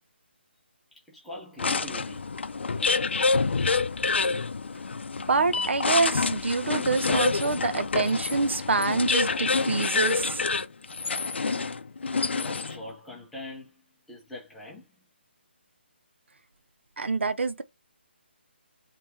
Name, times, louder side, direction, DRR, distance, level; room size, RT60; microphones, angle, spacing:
voice 1, 0.9-3.1 12.3-14.9, left 1 dB, ahead, 0.6 m, -43 dB
sound 1, 1.6-12.9, left 4 dB, 70° left, 0.5 m, -27 dB
voice 2, 5.3-10.4 17.0-17.6, right 3 dB, 75° right, 0.6 m, -26 dB
3.3 x 3.3 x 3.1 m
hypercardioid pair, 175°, 6 cm